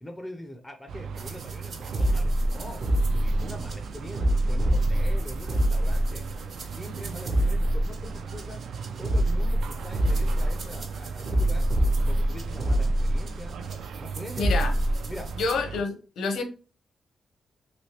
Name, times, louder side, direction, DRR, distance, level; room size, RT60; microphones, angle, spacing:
voice 1, 0.0-2.8 3.1-6.3 6.7-8.6 9.0-11.7 12.1-13.6 14.0-14.6 15.1-15.3, left 1 dB, 10° left, 0.4 m, -42 dB
Side Street City Distant Construction Traffic Voices, 0.9-15.8, right 6 dB, 90° right, 0.3 m, -38 dB
sound 1, 1.2-15.5, right 1 dB, 50° right, 0.6 m, -26 dB
voice 2, 14.4-14.7 15.4-16.4, left 4 dB, 85° left, 0.7 m, -28 dB
3.2 x 3.0 x 2.8 m
wide cardioid pair, 175°, 0 cm